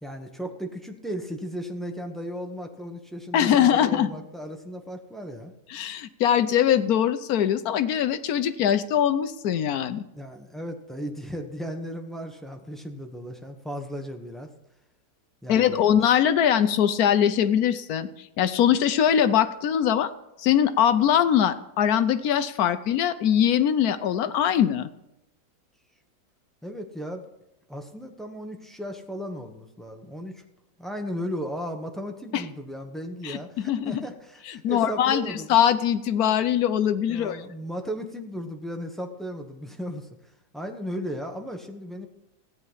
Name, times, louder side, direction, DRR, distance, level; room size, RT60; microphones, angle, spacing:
voice 1, 0.0-5.5 10.1-14.5 15.4-15.8 26.6-27.2 27.7-30.4 30.8-35.6 37.0-40.1 40.5-42.1, equal, ahead, 4 dB, 0.7 m, -35 dB
voice 2, 3.3-4.1 5.7-10.0 15.5-18.1 18.4-20.1 20.4-24.9 32.3-32.4 33.2-33.4 33.7-34.0 34.6-37.4, left 9 dB, 65° left, 11 dB, 1.0 m, -22 dB
14.5 x 9.4 x 5.6 m, 0.87 s
omnidirectional pair, 2.0 m